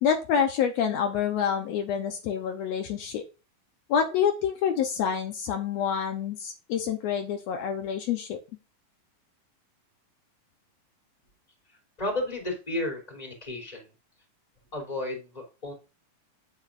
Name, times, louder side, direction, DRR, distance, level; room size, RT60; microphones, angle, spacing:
voice 1, 0.0-3.2 3.9-8.4, left 8 dB, 85° left, 4 dB, 1.5 m, -27 dB
voice 2, 12.0-13.9 14.7-15.7, left 1 dB, 10° left, 1 dB, 2.7 m, -33 dB
10.0 x 8.0 x 2.5 m, 0.31 s
omnidirectional pair, 4.2 m